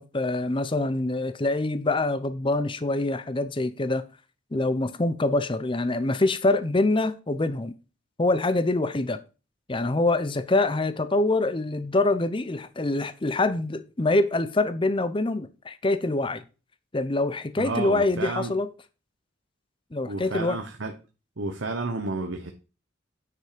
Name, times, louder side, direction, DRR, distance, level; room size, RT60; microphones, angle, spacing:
voice 1, 0.0-4.0 4.5-7.7 8.2-9.2 9.7-16.4 16.9-18.7 19.9-20.6, left 2 dB, 25° left, 0.6 m, -25 dB
voice 2, 17.6-18.5 20.1-20.9 21.4-22.5, right 3 dB, 85° right, 1.1 m, -31 dB
9.6 x 5.5 x 5.1 m
head